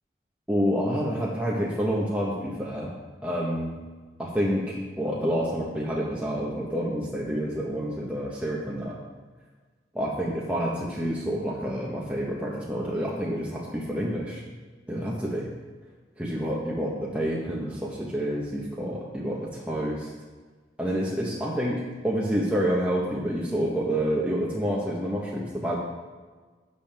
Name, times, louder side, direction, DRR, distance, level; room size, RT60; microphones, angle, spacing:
voice 1, 0.5-2.9 3.2-3.8 4.2-9.0 9.9-14.4 14.9-15.5 16.2-20.1 20.8-25.8, equal, 5° right, -5 dB, 1.1 m, -28 dB
11.5 x 6.9 x 3.5 m, 1.4 s
head